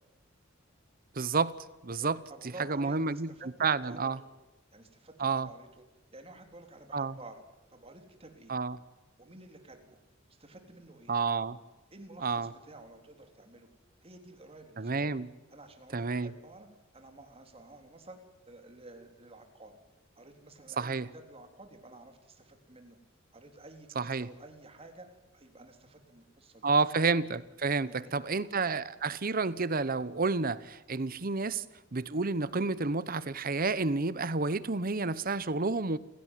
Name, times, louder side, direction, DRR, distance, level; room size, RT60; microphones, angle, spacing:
voice 1, 1.2-1.5 1.8-2.2 2.7-3.3 3.6-4.2 5.2-5.5 6.9-7.1 8.5-8.8 11.1-11.6 12.2-12.5 14.8-15.3 15.9-16.3 20.8-21.1 24.0-24.3 26.6-31.6 31.9-36.0, right 4 dB, 50° right, 0.9 m, -30 dB
voice 2, 1.9-4.3 4.7-5.8 6.1-7.4 7.7-8.6 9.2-10.0 10.3-11.2 11.9-13.7 14.0-15.1 15.5-16.7 16.9-18.2 18.5-19.8 20.2-23.0 23.3-26.7 27.8-28.2, right 2 dB, 30° right, 3.8 m, -52 dB
29.5 x 17.0 x 9.2 m
head